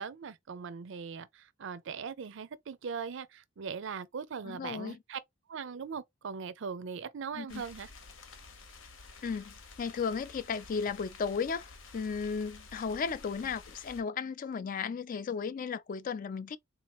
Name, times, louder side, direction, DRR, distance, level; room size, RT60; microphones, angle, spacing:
voice 1, 0.0-5.2 5.5-7.9, right 6 dB, 65° right, 0.5 m, -40 dB
voice 2, 4.5-5.0 7.3-7.6 9.2-16.6, left 5 dB, 45° left, 0.3 m, -35 dB
sound 1, 7.5-14.0, left 4 dB, 80° left, 0.9 m, -51 dB
3.8 x 2.8 x 3.0 m
head